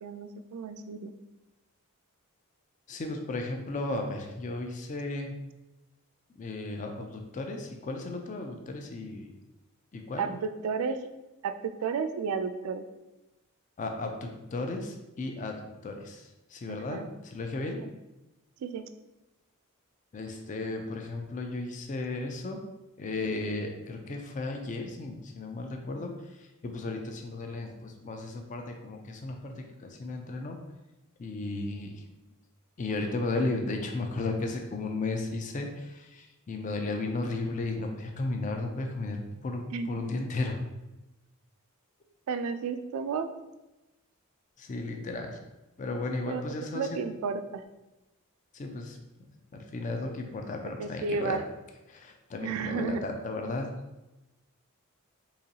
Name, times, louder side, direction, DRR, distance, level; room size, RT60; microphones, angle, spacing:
voice 1, 0.0-1.1 10.2-11.0 11.4-12.8 16.7-17.1 18.6-18.9 39.7-39.9 42.3-43.3 46.3-46.4 46.7-47.6 50.8-51.4 52.4-53.0, right 5 dB, 70° right, 8 dB, 0.3 m, -32 dB
voice 2, 2.9-5.3 6.4-9.3 9.9-10.3 13.8-17.8 20.1-22.6 23.0-26.1 26.6-30.6 31.2-31.9 32.8-40.6 44.6-45.4 45.8-47.0 48.5-49.0 49.5-51.4 51.9-53.7, left 2 dB, 35° left, 4 dB, 0.4 m, -34 dB
3.9 x 2.9 x 2.8 m, 1.0 s
head